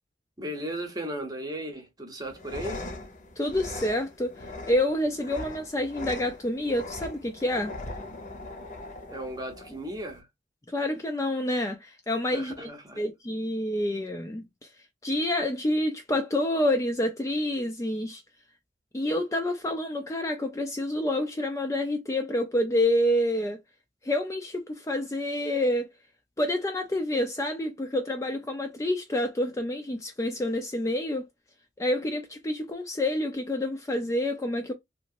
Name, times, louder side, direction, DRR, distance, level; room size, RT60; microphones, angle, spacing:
voice 1, 0.4-2.8 9.1-10.3 12.3-13.0, right 1 dB, 20° right, 0.7 m, -36 dB
sound 1, 2.2-10.2, left 2 dB, 45° left, 0.8 m, -40 dB
voice 2, 3.4-7.7 10.7-12.7 13.0-14.4 15.0-18.2 18.9-23.6 24.0-25.9 26.4-31.3 31.8-34.7, left 1 dB, 15° left, 0.4 m, -28 dB
2.9 x 2.6 x 2.5 m
head